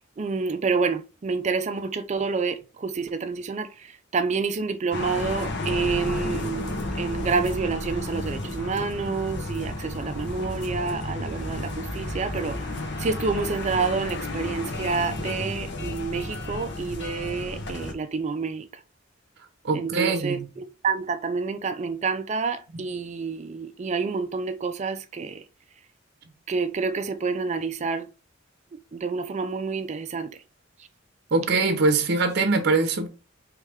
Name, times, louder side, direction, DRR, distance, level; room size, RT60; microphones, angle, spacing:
voice 1, 0.2-12.6 13.0-18.7 19.7-25.4 26.5-28.1 28.9-30.3, right 4 dB, 35° right, 0.4 m, -28 dB
sound 1, 4.9-17.9, left 2 dB, 60° left, 1.1 m, -32 dB
voice 2, 19.6-20.5 22.7-22.8 31.3-33.1, right 3 dB, 55° right, 0.8 m, -23 dB
4.8 x 3.2 x 3.4 m
head